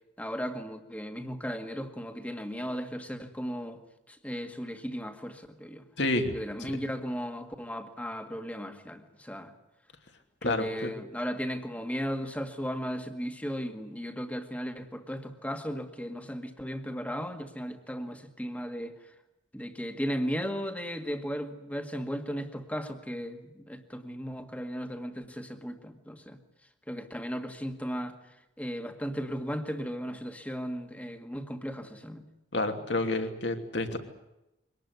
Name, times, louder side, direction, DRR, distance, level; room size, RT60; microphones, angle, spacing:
voice 1, 0.2-3.8 4.1-5.9 6.3-9.5 10.4-19.1 19.5-26.4 26.9-32.2, equal, 5° left, 6 dB, 1.9 m, -36 dB
voice 2, 6.0-6.3 6.6-6.7 10.4-10.9 32.5-34.0, left 2 dB, 65° left, 5 dB, 2.9 m, -29 dB
24.0 x 19.0 x 9.6 m, 0.91 s
head